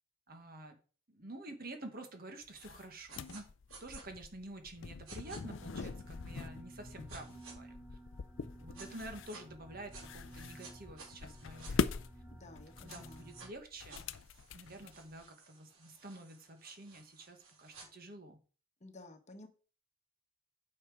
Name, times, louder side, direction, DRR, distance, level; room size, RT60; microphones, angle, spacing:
voice 1, 0.3-0.8 1.1-3.4 3.8-7.8 8.6-11.9 12.8-14.0 14.5-18.4, right 2 dB, 45° right, 6 dB, 1.6 m, -49 dB
sound 1, 2.5-15.2, left 4 dB, 60° left, 0.5 m, -42 dB
sound 2, 3.1-3.4 3.7-4.0 5.1-5.4 7.1-7.5 8.7-9.4 9.9-11.7 12.9-13.5 13.9-17.9, right 4 dB, 75° right, 4.0 m, -55 dB
sound 3, 5.1-13.5, right 1 dB, 5° right, 3.6 m, -54 dB
voice 2, 5.5-6.0 12.2-13.4 18.8-19.5, left 2 dB, 30° left, 6 dB, 1.2 m, -54 dB
9.1 x 5.9 x 5.0 m, 0.37 s
head